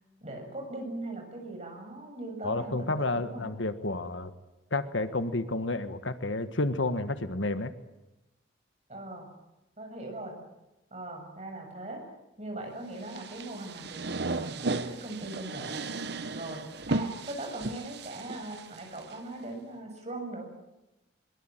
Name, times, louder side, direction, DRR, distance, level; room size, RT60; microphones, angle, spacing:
voice 1, 0.2-3.5 8.9-9.3 9.8-10.3 10.9-12.1 12.4-15.8 16.3-20.4, right 2 dB, 35° right, 3 dB, 7.3 m, -40 dB
voice 2, 2.4-4.3 4.7-7.7, left 2 dB, 75° left, 11 dB, 1.6 m, -30 dB
sound 1, 13.0-19.1, right 3 dB, 55° right, 1.1 m, -35 dB
23.0 x 22.5 x 9.1 m, 0.97 s
head